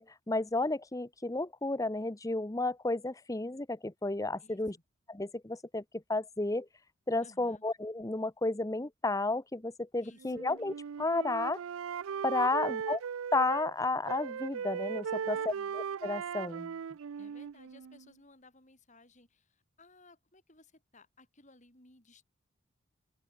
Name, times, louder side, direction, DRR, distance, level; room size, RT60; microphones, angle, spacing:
voice 1, 0.0-4.8 5.1-5.8 6.1-6.7 7.1-11.6 12.2-13.0 13.3-16.7, left 2 dB, 15° left, 0.8 m, -32 dB
voice 2, 7.2-7.6 10.0-10.4 12.4-12.9 15.3-15.8 17.2-22.2, left 2 dB, 35° left, 7.1 m, -60 dB
Wind instrument woodwind instrument, 10.2-13.7 14.1-18.1, right 7 dB, 90° right, 0.4 m, -38 dB
open air
head